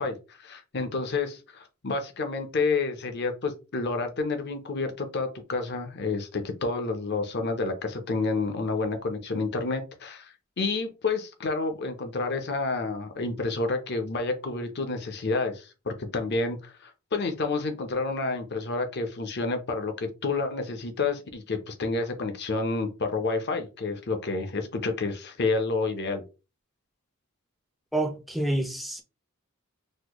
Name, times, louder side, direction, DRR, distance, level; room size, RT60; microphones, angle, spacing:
voice 1, 0.0-26.2, left 3 dB, 50° left, 0.7 m, -29 dB
voice 2, 27.9-29.0, right 1 dB, ahead, 0.5 m, -28 dB
4.2 x 2.1 x 3.0 m
head